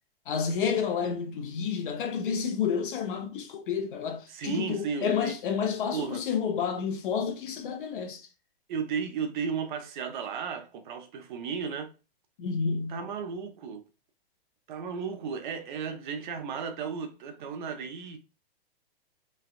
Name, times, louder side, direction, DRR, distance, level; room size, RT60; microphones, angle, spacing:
voice 1, 0.3-8.2 12.4-13.0, left 6 dB, 60° left, 0.8 m, -30 dB
voice 2, 0.8-1.1 4.3-5.4 5.9-6.3 8.7-11.9 12.9-13.8 14.7-18.2, right 6 dB, 50° right, 0.6 m, -34 dB
3.3 x 2.3 x 2.4 m
hypercardioid pair, 140°, 30 cm